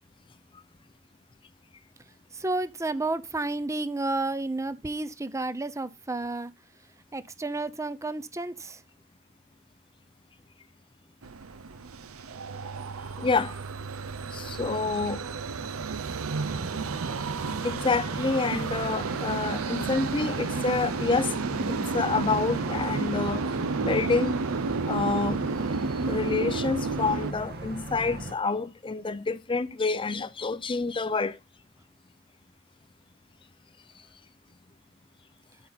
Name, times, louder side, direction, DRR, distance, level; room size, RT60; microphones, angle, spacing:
voice 1, 2.3-6.5 7.1-8.8, right 2 dB, 15° right, 0.6 m, -31 dB
sound 1, 11.2-27.3, right 4 dB, 85° right, 0.6 m, -32 dB
voice 2, 13.2-13.6 14.3-15.2 17.6-23.5 23.8-24.4 24.9-25.4 26.1-31.4, left 4 dB, 25° left, 0.5 m, -28 dB
sound 2, 16.4-28.3, right 2 dB, 50° right, 1.7 m, -37 dB
13.0 x 5.4 x 4.0 m
head